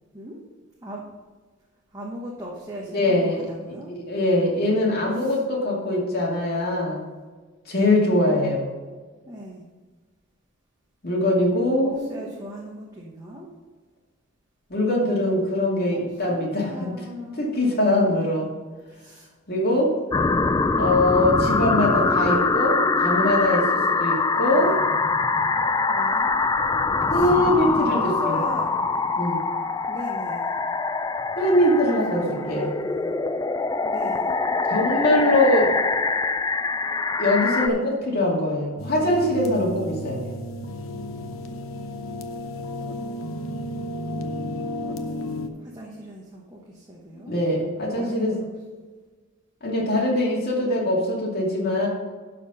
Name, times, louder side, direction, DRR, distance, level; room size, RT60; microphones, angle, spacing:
voice 1, 1.9-3.9 5.2-5.3 9.3-9.7 11.8-13.5 15.9-16.0 16.3-18.0 18.9-19.3 21.2-21.3 22.1-22.6 24.4-24.9 25.9-26.3 27.1-27.3 27.6-29.0 29.9-30.5 32.1-33.1 33.8-34.4 45.6-47.3 48.0-48.5, equal, 15° right, -3 dB, 1.1 m, -38 dB
voice 2, 2.9-3.4 3.7-7.0 7.7-8.7 11.0-12.2 14.7-16.9 17.4-18.5 19.5-20.0 20.8-24.7 27.0-28.4 29.2-29.4 31.4-32.7 34.7-35.8 37.2-40.3 47.3-48.4 49.6-51.9, left 1 dB, 50° left, -3 dB, 2.5 m, -22 dB
sound 1, 20.1-37.7, left 4 dB, 15° left, 0.3 m, -23 dB
sound 2, 38.8-45.5, left 1 dB, 80° left, 0.8 m, -33 dB
11.5 x 4.4 x 5.4 m, 1.4 s
head